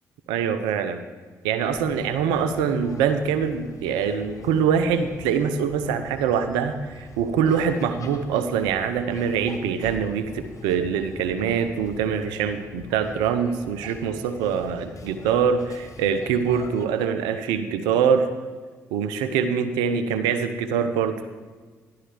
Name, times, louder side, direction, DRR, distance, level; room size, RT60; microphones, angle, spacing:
voice 1, 0.3-1.0 1.4-18.3 18.9-21.2, right 7 dB, 85° right, 10 dB, 0.7 m, -24 dB
sound 1, 1.6-16.9, left 3 dB, 50° left, 1.2 m, -43 dB
12.5 x 11.5 x 3.4 m, 1.5 s
hypercardioid pair, 45°, 7 cm